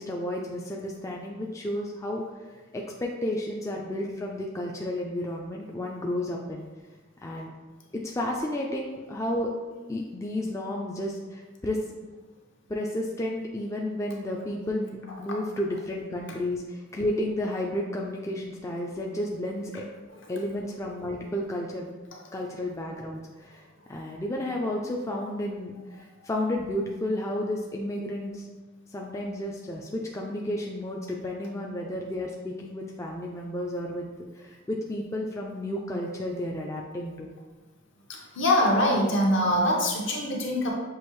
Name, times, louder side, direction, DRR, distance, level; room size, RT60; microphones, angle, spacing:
voice 1, 0.0-2.2 2.5-6.7 7.2-7.5 8.0-9.5 9.9-11.8 12.7-19.8 20.3-21.9 22.3-23.6 23.9-28.5 28.9-34.1 34.3-37.3, left 1 dB, 15° left, -1 dB, 0.3 m, -32 dB
voice 2, 38.1-40.7, left 1 dB, 60° left, -1 dB, 0.9 m, -23 dB
6.2 x 2.7 x 3.0 m, 1.3 s
head